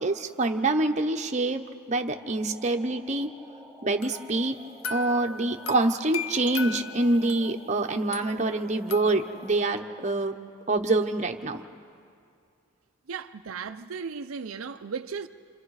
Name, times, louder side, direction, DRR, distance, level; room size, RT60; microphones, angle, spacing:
voice 1, 0.0-3.3 3.8-4.6 4.9-10.4 10.7-11.6, right 2 dB, 35° right, 0.9 m, -26 dB
sound 1, 2.1-10.1, right 1 dB, ahead, 4.2 m, -50 dB
sound 2, 4.0-7.6 8.1-9.6, left 5 dB, 70° left, 0.7 m, -38 dB
voice 2, 13.1-15.3, right 5 dB, 75° right, 0.6 m, -36 dB
28.0 x 27.5 x 4.9 m
head